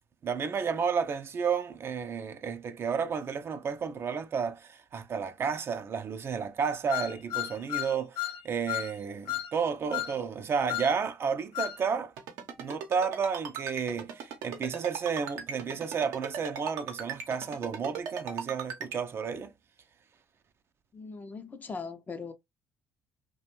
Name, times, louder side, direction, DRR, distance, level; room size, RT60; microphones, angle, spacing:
voice 1, 0.2-12.1 12.6-19.5, right 6 dB, 45° right, 0.4 m, -32 dB
Bombole azoto, 6.9-8.4 8.7-8.9 9.3-9.5 9.9-10.1 10.7-10.9 11.5-11.8, left 14 dB, 85° left, 0.4 m, -33 dB
Ringtone, 12.2-19.0, right 7 dB, 80° right, 0.7 m, -37 dB
voice 2, 20.9-22.3, left 4 dB, 30° left, 0.5 m, -40 dB
2.5 x 2.1 x 2.9 m
supercardioid pair, 75°, 6 cm